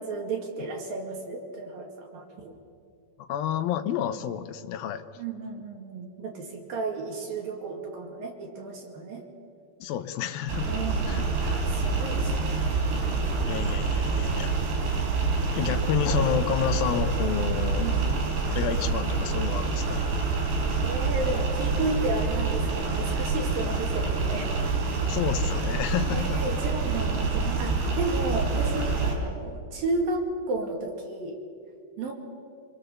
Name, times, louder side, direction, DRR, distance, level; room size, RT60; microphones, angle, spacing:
voice 1, 0.0-2.6 5.2-9.3 10.7-11.3 11.7-12.6 17.8-18.2 20.8-24.5 26.1-31.4 32.0-32.1, right 3 dB, 55° right, 1 dB, 3.7 m, -33 dB
voice 2, 3.3-5.0 9.8-10.7 11.1-11.6 13.4-14.8 15.5-17.9 18.4-20.0 25.1-26.4, left 10 dB, 75° left, 9 dB, 2.3 m, -30 dB
sound 1, 10.5-29.2, right 4 dB, 80° right, 6.3 m, -27 dB
Drum, 16.1-18.0, left 4 dB, 45° left, 3.6 m, -40 dB
26.5 x 22.5 x 7.1 m, 2.3 s
omnidirectional pair, 5.2 m